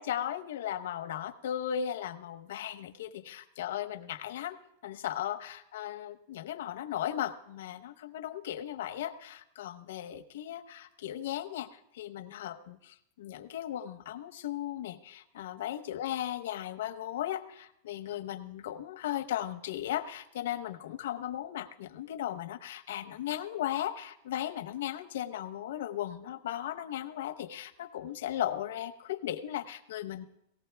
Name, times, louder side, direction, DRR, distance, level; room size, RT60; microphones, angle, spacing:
voice 1, 0.0-4.6 4.8-30.3, left 11 dB, 85° left, 8 dB, 0.9 m, -36 dB
18.5 x 14.5 x 3.4 m, 0.78 s
supercardioid pair, 175°, 0 cm